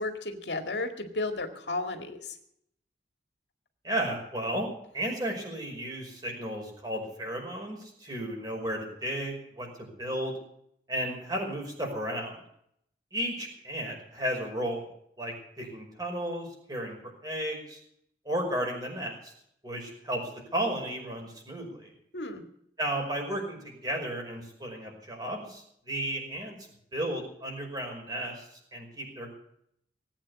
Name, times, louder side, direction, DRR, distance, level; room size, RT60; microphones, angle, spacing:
voice 1, 0.0-2.2 22.1-22.4, left 2 dB, 75° left, 5 dB, 2.1 m, -33 dB
voice 2, 3.8-4.7 4.9-10.4 10.9-12.4 13.1-14.9 15.2-17.8 18.3-19.3 19.6-21.9 22.8-26.6 26.9-29.3, right 1 dB, 25° right, 1 dB, 5.5 m, -34 dB
19.0 x 8.9 x 8.5 m, 0.71 s
head